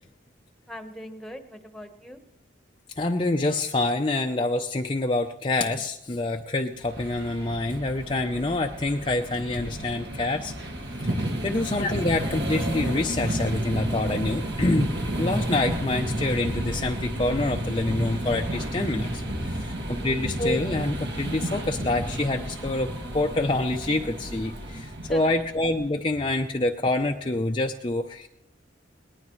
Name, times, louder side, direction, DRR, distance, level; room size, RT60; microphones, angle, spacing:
voice 1, 0.7-2.2 9.7-10.1 11.4-11.7 20.0-20.3 25.0-25.3, equal, ahead, 5 dB, 1.2 m, -42 dB
voice 2, 3.0-10.5 11.4-19.2 19.5-22.9 23.1-28.3, left 2 dB, 25° left, 3 dB, 0.6 m, -26 dB
sound 1, 6.8-25.9, right 1 dB, 60° right, 2.0 m, -31 dB
22.0 x 19.0 x 3.2 m, 0.83 s
head